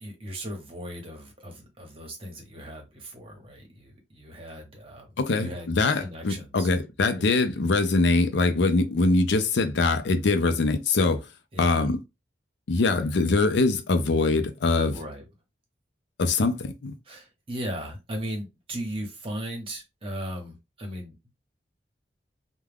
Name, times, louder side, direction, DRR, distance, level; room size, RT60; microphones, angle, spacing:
voice 1, 0.0-6.7 7.1-7.2 11.5-11.9 14.9-15.2 17.0-21.3, equal, 30° right, 1.0 m, -37 dB
voice 2, 5.2-11.2 11.6-12.0 12.7-14.9 16.2-16.9, left 3 dB, 80° left, 0.5 m, -23 dB
2.3 x 2.1 x 3.3 m
head